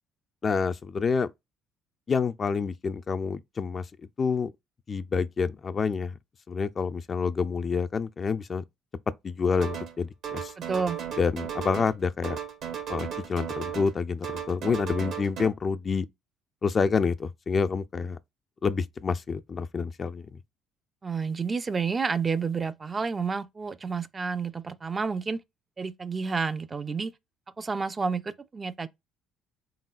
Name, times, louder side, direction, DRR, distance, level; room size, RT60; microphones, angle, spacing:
voice 1, 0.4-1.3 2.1-3.8 4.2-4.5 4.9-6.1 6.5-8.6 9.2-10.5 11.2-12.4 12.9-16.1 16.6-18.2 18.6-20.4, left 5 dB, 40° left, 0.4 m, -28 dB
sound 1, 9.6-10.0 10.2-12.0 12.2-14.0 14.2-15.5, right 8 dB, 65° right, 1.1 m, -35 dB
voice 2, 10.6-11.0 21.0-25.4 25.8-27.1 27.6-28.9, right 5 dB, 30° right, 0.4 m, -30 dB
3.9 x 3.7 x 2.4 m
supercardioid pair, 65°, 0 cm